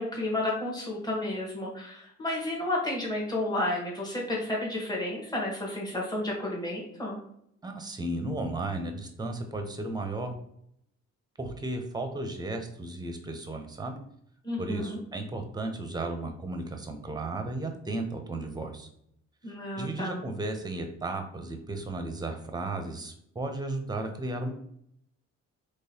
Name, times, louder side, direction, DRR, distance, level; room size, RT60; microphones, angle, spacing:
voice 1, 0.0-7.2 14.4-15.0 19.4-20.2, left 1 dB, 15° left, -3 dB, 1.2 m, -31 dB
voice 2, 7.6-10.3 11.4-14.0 14.6-18.9 19.8-24.5, right 2 dB, 15° right, 5 dB, 0.6 m, -34 dB
3.8 x 3.2 x 2.8 m, 0.72 s
cardioid pair, 90°, 30 cm